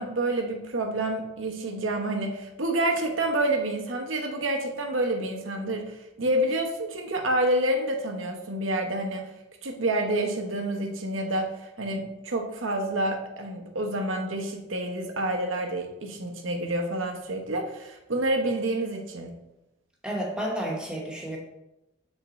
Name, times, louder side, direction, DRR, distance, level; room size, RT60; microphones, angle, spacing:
voice 1, 0.0-9.3 9.6-19.3, right 1 dB, 80° right, 3 dB, 0.9 m, -28 dB
voice 2, 20.0-21.4, equal, 5° right, -1 dB, 1.0 m, -31 dB
6.5 x 3.6 x 4.1 m, 0.92 s
head